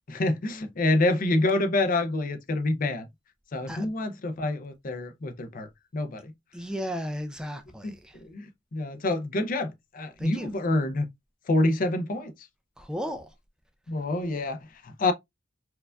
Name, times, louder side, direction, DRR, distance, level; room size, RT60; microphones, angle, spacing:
voice 1, 0.1-3.1 3.5-5.7 5.9-6.3 7.8-7.9 8.2-11.1 11.5-12.3 13.9-15.1, left 2 dB, 45° left, 0.5 m, -27 dB
voice 2, 6.5-8.2 10.2-10.5 12.8-13.3, equal, 5° right, 0.3 m, -35 dB
4.5 x 2.4 x 2.2 m
head